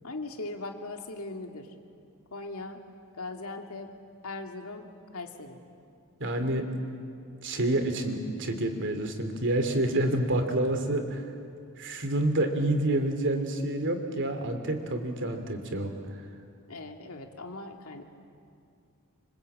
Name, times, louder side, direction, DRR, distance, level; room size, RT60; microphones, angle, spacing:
voice 1, 0.0-1.7 2.3-2.8 3.2-3.9 4.2-5.6 16.7-18.0, left 2 dB, 70° left, 4 dB, 2.4 m, -39 dB
voice 2, 6.2-6.6 7.4-11.2 11.8-15.9, right 1 dB, 55° right, 6 dB, 3.0 m, -28 dB
26.5 x 25.0 x 8.7 m, 2.4 s
head